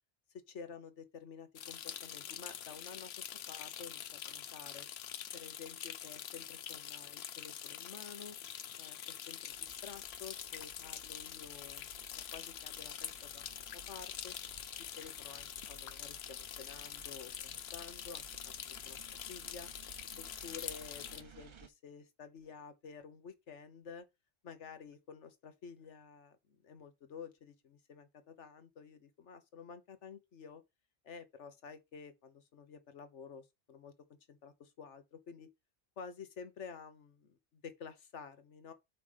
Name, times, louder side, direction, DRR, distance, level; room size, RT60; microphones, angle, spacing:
voice 1, 0.5-4.9 5.3-8.4 8.8-14.3 14.8-19.0 19.3-19.7 20.2-24.0 24.4-26.4 26.6-30.6 31.0-33.9 34.3-35.5 36.0-38.7, left 6 dB, 85° left, 1.4 m, -51 dB
sound 1, 1.6-21.2, left 10 dB, 65° left, 0.9 m, -45 dB
sound 2, 9.5-21.7, right 8 dB, 45° right, 0.4 m, -59 dB
5.7 x 4.9 x 5.5 m
omnidirectional pair, 1.2 m